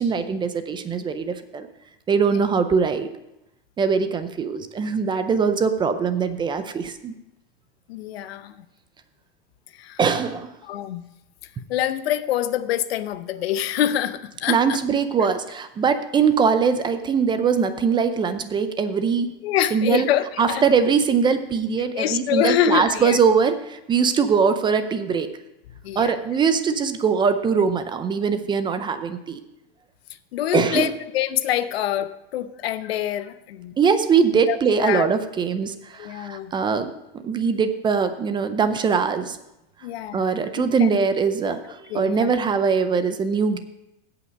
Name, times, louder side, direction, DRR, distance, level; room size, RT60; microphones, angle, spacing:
voice 1, 0.0-1.7 2.1-3.1 3.8-7.1 10.0-10.6 14.5-19.3 19.7-20.1 20.4-25.3 26.0-29.4 30.5-31.0 33.8-39.4 40.1-43.6, right 6 dB, 15° right, 10 dB, 0.5 m, -22 dB
voice 2, 7.9-8.6 9.7-10.0 10.7-11.1 11.7-14.8 19.4-20.7 21.9-23.2 25.8-26.1 30.3-33.7 34.5-35.1 36.0-36.5 39.8-40.2 40.6-40.9 41.9-42.3, left 11 dB, 85° left, 13 dB, 0.8 m, -25 dB
16.0 x 5.8 x 5.1 m, 0.90 s
supercardioid pair, 140°, 30 cm